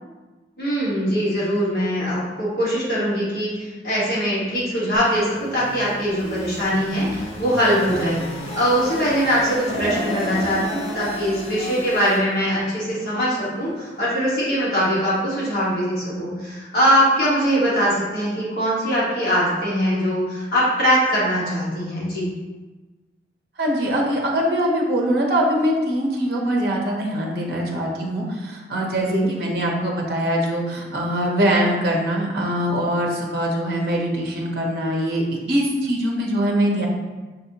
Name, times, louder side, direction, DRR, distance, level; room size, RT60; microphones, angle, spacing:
voice 1, 0.6-8.2 8.6-22.3 29.1-29.3, equal, 55° left, -7 dB, 1.3 m, -22 dB
sound 1, 4.9-12.2, left 1 dB, 30° left, 0.5 m, -33 dB
sound 2, 9.7-12.8 13.2-13.4 14.4-14.5, equal, 30° right, 1.2 m, -31 dB
voice 2, 23.6-36.9, equal, 55° right, -1 dB, 0.7 m, -22 dB
5.2 x 2.7 x 2.8 m, 1.2 s
head